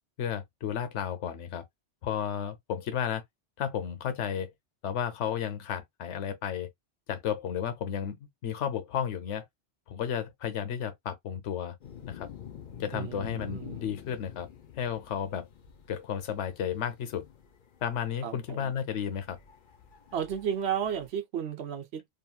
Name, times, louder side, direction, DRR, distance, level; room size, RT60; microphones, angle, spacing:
voice 1, 0.2-1.6 2.0-3.2 3.6-4.5 4.8-6.7 7.1-8.2 8.4-9.4 9.9-11.8 12.1-12.3 12.8-14.5 14.8-15.5 15.9-17.2 17.8-19.4, left 8 dB, 85° left, 1.0 m, -33 dB
sound 1, 11.8-21.1, left 8 dB, 50° left, 0.7 m, -48 dB
voice 2, 12.9-13.9 18.2-18.7 20.1-22.1, right 8 dB, 65° right, 0.9 m, -33 dB
2.9 x 2.7 x 2.2 m
omnidirectional pair, 1.2 m